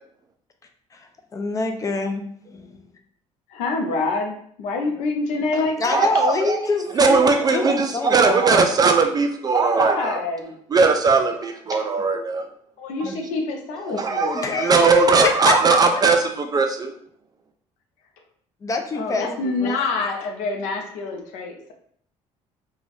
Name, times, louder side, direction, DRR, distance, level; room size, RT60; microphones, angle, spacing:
voice 1, 1.3-2.9 3.9-4.1 5.8-8.7 11.7-12.3 13.0-13.2 13.9-14.0 14.3-15.2 15.4-16.0 18.6-19.8, left 3 dB, 25° left, 5 dB, 0.5 m, -27 dB
voice 2, 3.5-6.1 9.7-10.5 11.7-11.8 12.8-14.5 18.9-21.7, left 3 dB, 90° left, 3 dB, 0.6 m, -26 dB
voice 3, 5.9-6.6 7.0-10.2 10.7-12.4 14.0-16.9, right 4 dB, 30° right, 5 dB, 0.3 m, -19 dB
2.4 x 2.2 x 3.3 m, 0.63 s
cardioid pair, 100°, 12 cm